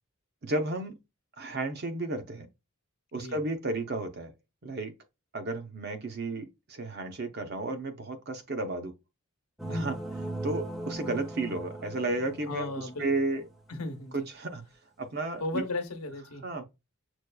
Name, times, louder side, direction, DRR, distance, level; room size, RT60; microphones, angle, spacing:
voice 1, 0.4-0.9 1.4-2.5 3.1-4.3 4.6-4.9 5.3-8.9 9.7-9.9 10.4-13.4 14.1-14.6 15.0-15.6 16.4-16.7, right 2 dB, 45° right, 0.7 m, -33 dB
sound 1, 9.6-13.6, right 1 dB, ahead, 0.4 m, -39 dB
voice 2, 12.5-13.1 13.7-14.3 15.4-16.4, left 2 dB, 85° left, 0.8 m, -35 dB
6.2 x 2.3 x 2.3 m
head